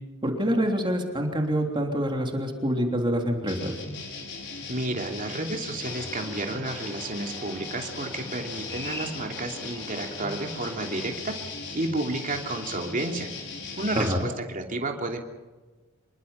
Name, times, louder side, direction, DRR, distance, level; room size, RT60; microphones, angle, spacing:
voice 1, 0.2-3.7 13.9-14.3, equal, 25° right, 2 dB, 3.3 m, -26 dB
sound 1, 3.5-14.1, left 4 dB, 60° left, 5.6 m, -38 dB
voice 2, 4.7-11.3 11.7-13.3 13.8-15.2, right 2 dB, 40° right, 2 dB, 3.0 m, -31 dB
sound 2, 5.8-11.2, left 1 dB, 15° left, 3.0 m, -44 dB
27.0 x 24.0 x 5.8 m, 1.2 s
head